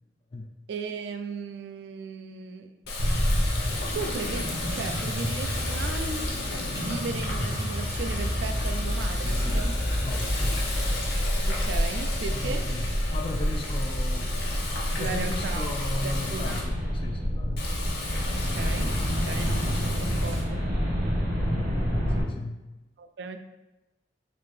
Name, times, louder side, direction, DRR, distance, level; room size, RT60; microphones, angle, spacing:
voice 1, 0.7-2.7 3.9-6.3 6.8-9.8 11.4-12.7 15.0-16.6 18.3-20.6 23.0-23.4, right 4 dB, 75° right, 7 dB, 0.3 m, -36 dB
Water tap faucet, 2.8-16.6 17.6-20.4, left 2 dB, 65° left, 0.8 m, -35 dB
sound 1, 3.0-22.2, equal, 60° right, 1.2 m, -28 dB
sound 2, 3.7-11.1, equal, 20° right, 0.6 m, -39 dB
voice 2, 10.0-10.4 12.3-12.9 13.1-14.4 14.9-18.0 22.2-22.6, left 2 dB, 30° left, 3 dB, 0.3 m, -36 dB
4.0 x 2.7 x 3.2 m, 1.1 s
head